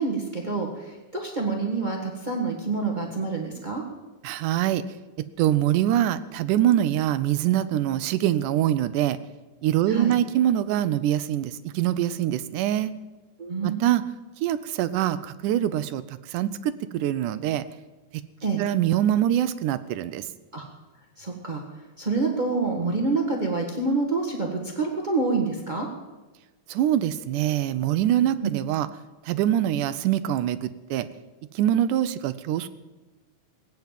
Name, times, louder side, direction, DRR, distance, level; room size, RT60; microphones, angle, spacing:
voice 1, 0.0-3.8 9.9-10.1 13.4-14.1 18.4-18.6 20.5-20.6 21.2-21.6 22.0-25.9 28.4-28.5, right 4 dB, 60° right, 0 dB, 0.4 m, -27 dB
voice 2, 4.2-4.8 5.4-9.2 9.6-12.9 13.6-14.0 14.4-17.6 18.6-20.2 26.7-28.9 29.3-31.1 31.6-32.7, right 11 dB, 80° right, 14 dB, 1.9 m, -24 dB
19.0 x 9.2 x 7.4 m, 1.2 s
omnidirectional pair, 4.0 m